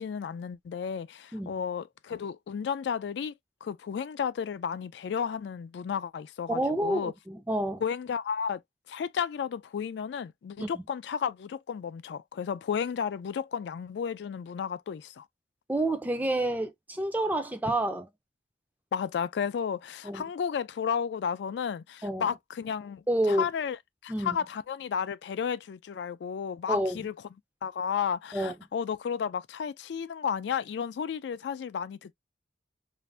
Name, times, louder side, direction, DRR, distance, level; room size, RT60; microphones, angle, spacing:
voice 1, 0.0-3.3 3.6-7.1 7.8-8.6 8.9-15.3 18.9-23.8 24.0-27.1 27.6-32.1, left 7 dB, 75° left, 0.3 m, -33 dB
voice 2, 6.5-7.8 10.6-10.8 15.7-18.1 20.0-20.2 22.0-22.3 23.1-23.5 24.1-24.4 26.7-27.0 28.3-28.5, right 1 dB, 10° right, 0.4 m, -29 dB
2.6 x 2.1 x 3.2 m
head